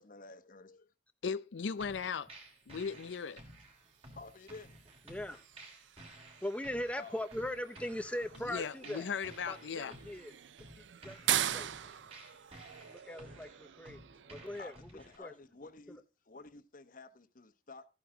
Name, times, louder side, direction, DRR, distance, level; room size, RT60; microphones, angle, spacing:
voice 1, 0.0-0.8 4.1-4.7 7.0-7.3 12.5-12.6 14.1-17.9, left 3 dB, 50° left, 1.1 m, -52 dB
voice 2, 1.2-2.3 2.7-3.4 8.5-10.0, left 6 dB, 85° left, 0.5 m, -37 dB
sound 1, 1.8-15.2, right 1 dB, 35° right, 3.1 m, -55 dB
sound 2, 2.8-14.8, right 11 dB, 85° right, 0.5 m, -42 dB
voice 3, 5.1-5.4 6.4-9.1 9.5-10.4 11.0-11.2 11.5-11.7 12.9-14.0 14.3-14.7 15.2-15.3, left 1 dB, 5° left, 0.6 m, -39 dB
13.5 x 8.8 x 3.8 m
head